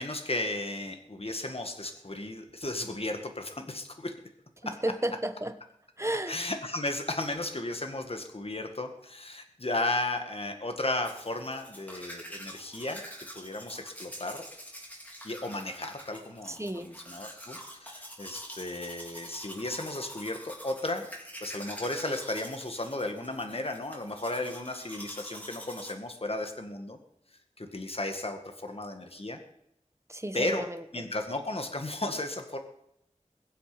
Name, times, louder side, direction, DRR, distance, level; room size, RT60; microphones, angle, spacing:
voice 1, 0.0-4.1 4.7-4.8 6.3-13.0 13.4-14.4 15.2-21.1 21.4-27.0 27.6-29.4 30.3-30.7 30.9-32.6, left 2 dB, 50° left, 5 dB, 1.9 m, -34 dB
voice 2, 4.6-5.5 6.0-6.4 16.5-16.9 30.1-31.1, right 1 dB, 20° right, 9 dB, 1.3 m, -33 dB
Domestic sounds home sounds, 11.0-25.9, equal, 10° left, 4.3 m, -45 dB
22.0 x 7.8 x 5.1 m, 0.79 s
wide cardioid pair, 45°, 13 cm